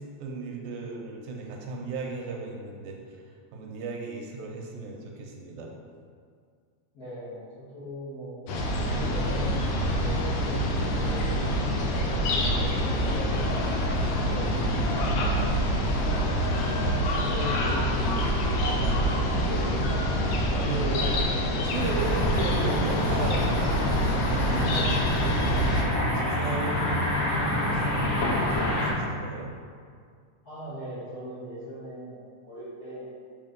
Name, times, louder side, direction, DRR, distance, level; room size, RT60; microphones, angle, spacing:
voice 1, 0.0-5.8 14.2-14.8 16.4-16.7 19.4-19.7 20.4-23.5 24.2-29.5, right 3 dB, 80° right, 0 dB, 2.1 m, -35 dB
voice 2, 6.9-8.4 8.9-9.7 10.0-13.7 16.5-19.1 30.4-33.1, equal, 40° left, -12 dB, 1.4 m, -40 dB
sound 1, 8.5-25.8, equal, 80° left, 1.3 m, -26 dB
sound 2, 21.7-28.9, left 1 dB, 65° left, 2.1 m, -28 dB
5.8 x 3.3 x 5.1 m, 2.1 s
omnidirectional pair, 3.5 m